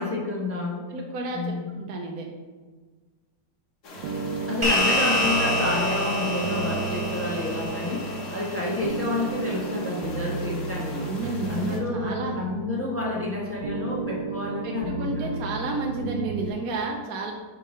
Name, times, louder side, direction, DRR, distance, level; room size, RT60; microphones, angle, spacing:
voice 1, 0.0-0.8 1.3-1.7 4.5-11.1 11.5-15.5, left 2 dB, 10° left, -4 dB, 0.9 m, -29 dB
voice 2, 0.9-2.3 10.9-12.4 14.6-17.3, right 2 dB, 65° right, 1 dB, 1.1 m, -32 dB
sound 1, 3.8-11.8, left 2 dB, 50° left, 1.1 m, -41 dB
sound 2, 4.0-16.5, right 4 dB, 90° right, 1.3 m, -33 dB
sound 3, 4.6-9.3, left 1 dB, 20° right, 1.3 m, -27 dB
6.5 x 3.8 x 5.4 m, 1.4 s
omnidirectional pair, 1.9 m